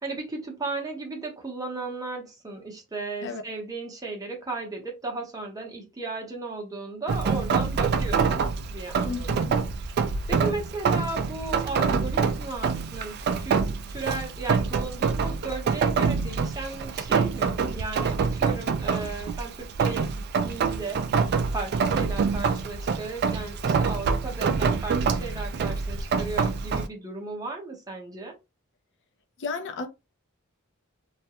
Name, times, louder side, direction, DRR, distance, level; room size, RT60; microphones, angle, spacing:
voice 1, 0.0-9.4 10.3-13.6 13.9-28.3, right 3 dB, 15° right, 0.7 m, -35 dB
Rain, 7.1-26.9, right 5 dB, 45° right, 0.3 m, -26 dB
voice 2, 9.0-9.5 29.4-29.9, left 4 dB, 55° left, 0.5 m, -33 dB
2.3 x 2.1 x 2.8 m
head